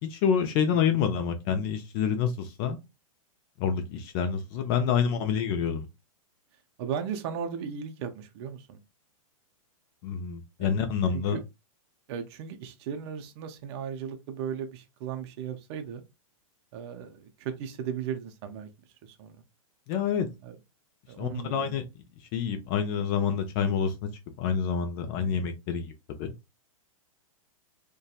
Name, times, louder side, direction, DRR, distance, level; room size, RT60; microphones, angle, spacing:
voice 1, 0.0-2.8 3.6-5.9 10.0-11.4 19.9-20.3 21.2-21.8 22.3-23.9 24.4-25.9 26.2-26.3, left 7 dB, 40° left, 0.5 m, -27 dB
voice 2, 4.9-5.3 6.8-8.8 10.6-10.7 11.1-11.4 12.1-16.0 16.7-18.7 19.0-19.3 20.4-20.6 21.1-21.8 25.2-25.3, right 7 dB, 50° right, 0.5 m, -36 dB
2.7 x 2.2 x 2.3 m
hypercardioid pair, 130°, 18 cm